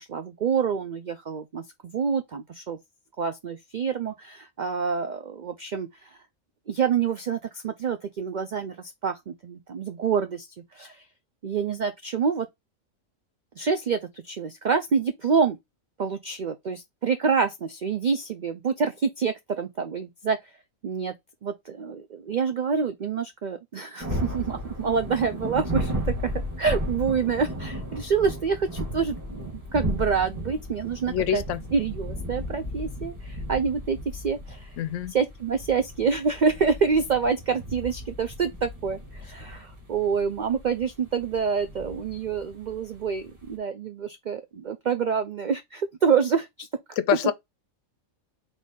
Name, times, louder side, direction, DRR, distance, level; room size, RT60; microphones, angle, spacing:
voice 1, 0.0-2.8 3.2-5.9 6.7-10.5 10.7-11.0 11.4-12.5 13.6-15.6 16.0-20.4 20.8-21.1 21.4-31.4 31.7-34.8 35.1-46.7, right 6 dB, 70° right, 0.4 m, -27 dB
sound 1, 24.0-43.6, equal, 15° right, 1.7 m, -35 dB
voice 2, 31.1-31.6 34.8-35.1 47.0-47.3, left 10 dB, 70° left, 0.9 m, -25 dB
4.0 x 3.3 x 3.6 m
omnidirectional pair, 1.4 m